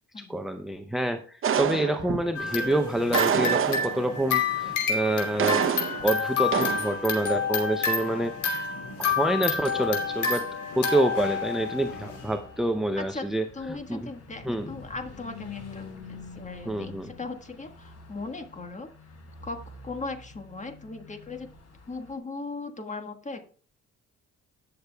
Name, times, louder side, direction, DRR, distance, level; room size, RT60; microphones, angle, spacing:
voice 1, 0.2-5.6 6.0-8.7 9.0-10.4 10.8-14.1 14.4-14.7 16.7-17.1, right 1 dB, ahead, 6 dB, 0.6 m, -27 dB
sound 1, 1.4-2.3 3.1-4.2 5.4-6.1 6.5-6.9, right 7 dB, 45° right, 0.8 m, -26 dB
sound 2, 2.3-12.3, left 5 dB, 80° left, 2.8 m, -29 dB
Car passing by / Truck, 8.4-22.2, left 4 dB, 55° left, 4.4 m, -48 dB
voice 2, 13.0-13.3 13.5-18.9 19.4-21.5 21.9-23.4, left 3 dB, 25° left, 6 dB, 1.5 m, -38 dB
19.0 x 6.7 x 2.3 m, 0.42 s
cardioid pair, 90°, 30 cm